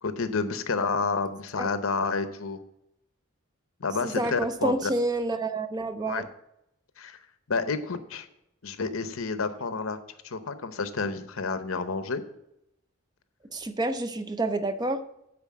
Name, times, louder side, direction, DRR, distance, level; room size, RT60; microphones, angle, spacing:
voice 1, 0.0-2.6 3.8-4.9 6.1-6.2 7.0-7.2 7.5-8.3 8.6-10.0 10.2-12.2, left 4 dB, 75° left, 11 dB, 0.8 m, -29 dB
voice 2, 4.0-6.3 13.5-15.0, right 2 dB, 20° right, 10 dB, 0.4 m, -28 dB
9.6 x 4.2 x 7.4 m, 0.82 s
head